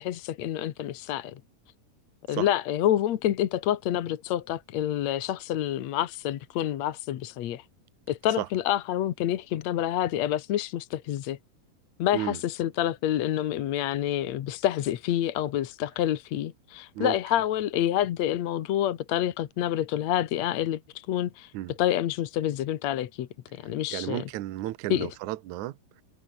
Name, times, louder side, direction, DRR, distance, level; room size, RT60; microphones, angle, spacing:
voice 1, 0.0-1.4 2.3-7.6 8.1-11.4 12.0-21.5 21.8-24.2 24.9-25.1, left 12 dB, 65° left, 1.9 m, -28 dB
voice 2, 23.9-26.0, right 15 dB, 65° right, 2.0 m, -33 dB
omnidirectional pair, 4.4 m